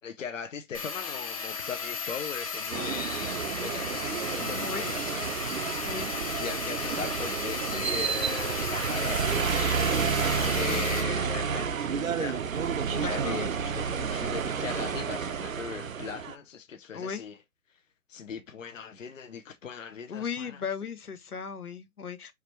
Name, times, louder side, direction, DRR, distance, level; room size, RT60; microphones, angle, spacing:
voice 1, 0.0-5.4 6.4-9.8 10.2-12.4 13.0-17.4 17.7-17.8 18.1-20.6, left 7 dB, 60° left, 0.8 m, -39 dB
sound 1, 0.7-11.0, left 5 dB, 25° left, 0.9 m, -35 dB
sound 2, 2.7-16.4, right 6 dB, 65° right, 0.7 m, -30 dB
voice 2, 10.4-10.9 12.9-13.4 16.9-17.2 20.1-22.3, left 6 dB, 85° left, 1.1 m, -36 dB
4.9 x 3.3 x 3.0 m
hypercardioid pair, 165°, 44 cm